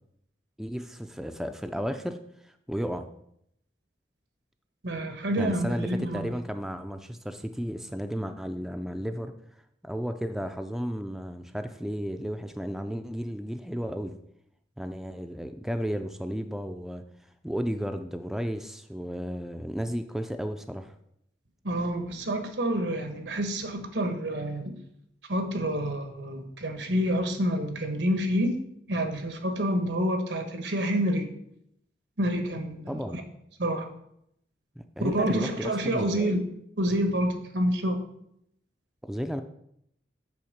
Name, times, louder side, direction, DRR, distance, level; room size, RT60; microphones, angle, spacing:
voice 1, 0.6-2.2 2.4-3.1 5.4-9.3 9.8-14.1 14.8-17.1 17.4-20.9 32.9-33.2 34.8-36.4 39.0-39.4, equal, ahead, 7 dB, 0.3 m, -33 dB
voice 2, 4.8-6.3 21.6-24.7 25.3-28.5 28.9-31.3 32.2-32.9 33.6-33.9 35.0-36.5 36.8-38.0, equal, 85° right, 6 dB, 1.2 m, -28 dB
8.5 x 3.6 x 6.5 m, 0.74 s
head